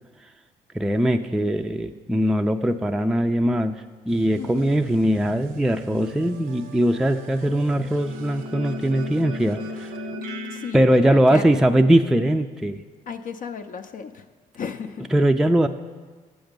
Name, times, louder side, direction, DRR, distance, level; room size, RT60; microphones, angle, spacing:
voice 1, 0.7-9.9 10.7-12.8 15.1-15.7, right 1 dB, 5° right, 6 dB, 0.4 m, -21 dB
sound 1, 4.1-10.7, right 1 dB, 80° right, 0.7 m, -37 dB
voice 2, 4.4-4.8 10.5-11.4 13.1-14.3 14.5-15.1, left 6 dB, 55° left, 6 dB, 0.5 m, -34 dB
7.8 x 7.1 x 5.2 m, 1.5 s
supercardioid pair, 70°, 16 cm